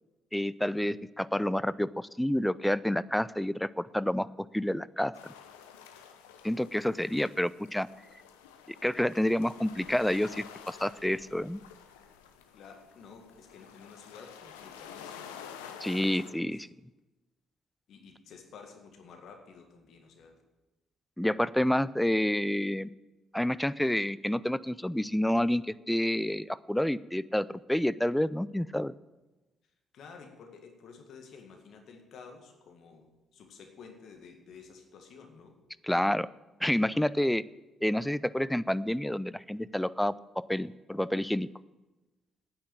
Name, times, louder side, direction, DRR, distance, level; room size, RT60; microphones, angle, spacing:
voice 1, 0.3-5.3 6.4-7.9 8.7-11.6 15.8-16.7 21.2-22.9 23.3-28.9 35.9-36.3 36.6-37.4 37.8-41.5, left 1 dB, 5° left, 18 dB, 0.5 m, -29 dB
sound 1, 5.1-16.3, left 8 dB, 80° left, 0.8 m, -50 dB
voice 2, 12.5-16.7 17.9-20.4 29.9-35.6, left 5 dB, 60° left, 4 dB, 1.9 m, -52 dB
9.6 x 8.7 x 8.6 m, 1.1 s
hypercardioid pair, 45°, 0 cm